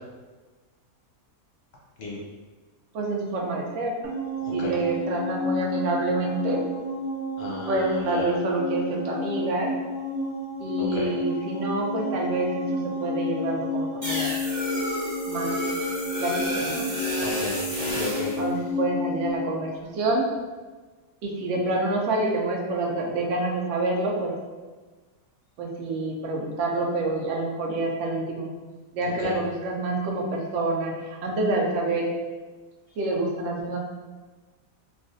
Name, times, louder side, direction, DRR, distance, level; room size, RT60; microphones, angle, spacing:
voice 1, 2.9-4.1 4.5-6.6 7.7-9.8 10.6-14.3 15.3-15.5 16.2-16.9 18.4-20.3 21.2-24.3 25.6-28.5 28.9-32.1 33.0-33.8, right 2 dB, 65° right, -1 dB, 0.8 m, -27 dB
sound 1, 4.0-19.4, left 2 dB, 45° right, 0.4 m, -31 dB
voice 2, 7.4-8.2 10.8-11.1 17.2-18.3 29.2-29.3, left 3 dB, 55° left, -4 dB, 0.8 m, -33 dB
sound 2, 14.0-18.4, left 1 dB, 25° right, 1.1 m, -30 dB
3.3 x 2.3 x 2.5 m, 1.3 s
omnidirectional pair, 1.5 m